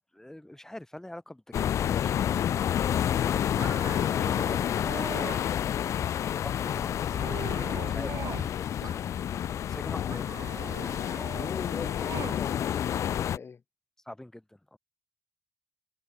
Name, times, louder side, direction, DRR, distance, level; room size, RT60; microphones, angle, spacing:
voice 1, 0.0-7.5 7.9-8.5 8.8-9.0 9.7-10.5 14.0-14.8, left 1 dB, 10° left, 5.1 m, -46 dB
sound 1, 1.5-13.4, left 10 dB, 85° left, 0.3 m, -29 dB
sound 2, 3.6-5.5 6.0-6.5 6.9-8.5 8.8-9.5 10.1-12.4, right 9 dB, 80° right, 0.8 m, -42 dB
voice 2, 11.3-13.6, left 5 dB, 55° left, 2.2 m, -41 dB
cardioid pair, 85°, 5 cm